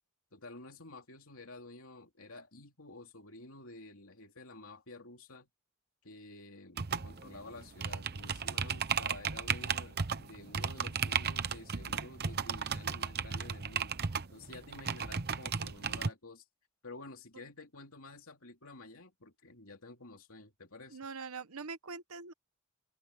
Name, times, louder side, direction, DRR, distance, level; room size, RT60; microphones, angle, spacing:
voice 1, 0.3-5.5 6.0-14.0 14.3-16.4 16.8-21.0, left 2 dB, 65° left, 3.3 m, -51 dB
sound 1, 6.8-16.1, right 6 dB, 45° right, 0.9 m, -35 dB
voice 2, 20.9-22.3, right 4 dB, 70° right, 1.1 m, -43 dB
head